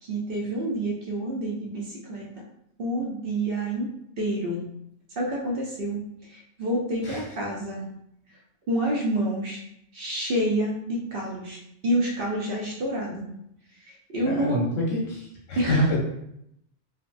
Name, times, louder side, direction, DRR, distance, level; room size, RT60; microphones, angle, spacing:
voice 1, 0.0-2.4 2.8-3.9 4.2-4.7 5.2-7.8 8.7-9.6 9.9-13.3 13.8-14.6 15.6-15.9, right 1 dB, 55° right, -2 dB, 0.7 m, -28 dB
voice 2, 14.2-16.0, equal, 85° left, -3 dB, 1.3 m, -26 dB
4.1 x 2.1 x 2.5 m, 0.78 s
omnidirectional pair, 1.2 m